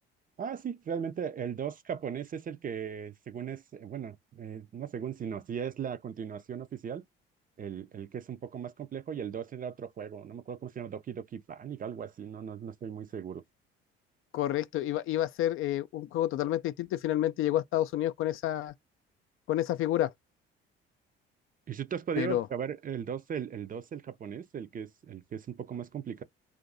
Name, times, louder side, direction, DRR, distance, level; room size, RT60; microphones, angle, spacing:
voice 1, 0.4-7.1 7.6-13.4 21.7-26.2, right 7 dB, 30° right, 0.5 m, -37 dB
voice 2, 14.3-18.7 19.5-20.1 22.2-22.4, left 13 dB, 45° left, 0.4 m, -29 dB
2.5 x 2.5 x 3.8 m
figure-of-eight pair, 50°, 29 cm